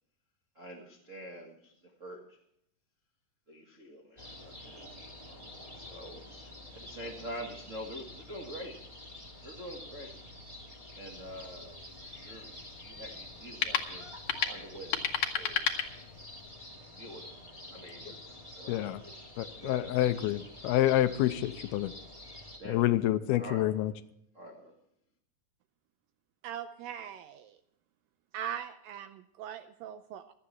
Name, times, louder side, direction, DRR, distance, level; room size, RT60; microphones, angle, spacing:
voice 1, 0.5-1.7 2.0-2.4 3.5-8.8 9.4-10.1 10.9-11.8 12.1-14.1 14.4-15.0 15.3-15.6 16.9-17.4 17.6-19.1 19.6-20.1 22.6-23.1 23.4-23.8 24.3-24.7, equal, 60° right, 0.7 m, -46 dB
sound 1, 4.2-22.6, left 1 dB, 10° right, 1.9 m, -48 dB
sound 2, 11.1-16.5, left 8 dB, 60° left, 2.0 m, -35 dB
voice 2, 18.7-19.0 19.4-21.9 22.7-23.9, left 14 dB, 85° left, 2.6 m, -28 dB
voice 3, 26.4-27.6 28.3-30.3, right 9 dB, 80° right, 2.0 m, -41 dB
16.0 x 12.5 x 4.3 m
omnidirectional pair, 4.6 m